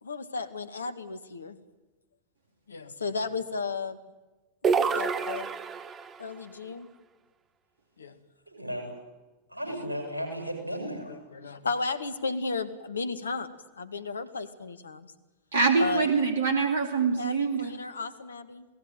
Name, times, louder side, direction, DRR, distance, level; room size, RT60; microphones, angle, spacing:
voice 1, 0.0-1.6 2.7-4.0 4.6-5.5 6.2-6.9 8.0-8.2 9.7-9.8 11.1-13.5 13.8-15.1 15.8-16.1 17.2-18.7, left 4 dB, 75° left, 12 dB, 1.9 m, -34 dB
sound 1, 4.6-6.2, right 5 dB, 25° right, 1.8 m, -27 dB
voice 2, 8.5-8.9 9.5-11.2, equal, 85° right, 3 dB, 7.7 m, -35 dB
voice 3, 15.5-17.7, right 4 dB, 65° right, 7 dB, 2.5 m, -24 dB
28.0 x 18.5 x 9.3 m, 1.2 s
figure-of-eight pair, 90°, 0 cm